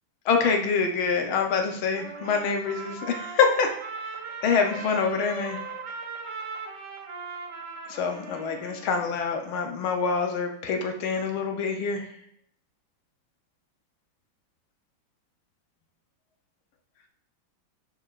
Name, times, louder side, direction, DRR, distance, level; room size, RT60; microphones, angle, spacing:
voice 1, 0.2-3.7 4.4-5.6 7.9-12.1, left 5 dB, 90° left, 3 dB, 1.7 m, -25 dB
Trumpet, 2.0-9.1, right 3 dB, 60° right, 1.6 m, -38 dB
10.0 x 4.9 x 2.5 m, 0.68 s
omnidirectional pair, 2.2 m